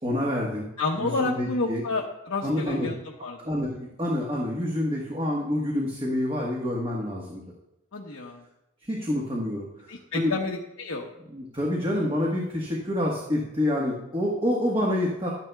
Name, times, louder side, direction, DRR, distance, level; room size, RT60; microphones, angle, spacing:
voice 1, 0.0-0.7 1.0-1.8 2.4-2.9 3.4-7.4 8.8-10.3 11.3-15.3, left 1 dB, 25° right, -2 dB, 1.3 m, -27 dB
voice 2, 0.8-3.5 7.9-8.4 9.9-11.1, left 3 dB, 85° left, -1 dB, 1.0 m, -30 dB
12.5 x 10.5 x 2.3 m, 0.92 s
head